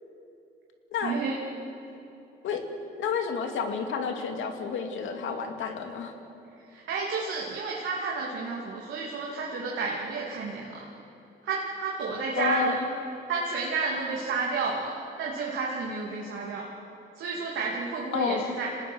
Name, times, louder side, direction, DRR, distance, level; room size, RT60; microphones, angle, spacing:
voice 1, 1.0-1.4 6.7-10.9 11.4-12.7 13.3-16.7 17.2-18.7, right 4 dB, 75° right, -3 dB, 2.8 m, -31 dB
voice 2, 3.0-6.1 12.3-12.8 18.1-18.4, left 5 dB, 80° left, 5 dB, 2.5 m, -30 dB
26.0 x 19.5 x 6.5 m, 2.9 s
cardioid pair, 90°, 20 cm